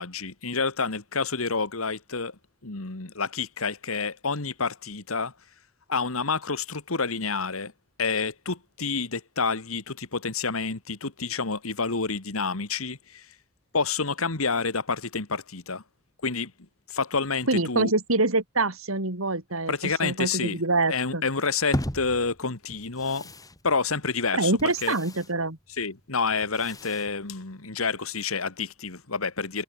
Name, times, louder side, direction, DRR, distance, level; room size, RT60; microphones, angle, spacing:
voice 1, 0.0-2.4 2.6-5.3 5.9-7.7 8.0-13.3 13.7-15.8 16.2-16.5 16.9-17.9 19.7-20.6 20.9-23.3 23.6-25.0 25.8-29.6, left 4 dB, 85° left, 2.1 m, -29 dB
voice 2, 17.5-21.2 24.3-25.6, right 2 dB, 75° right, 4.3 m, -25 dB
sound 1, 21.7-27.9, equal, 15° left, 3.3 m, -38 dB
head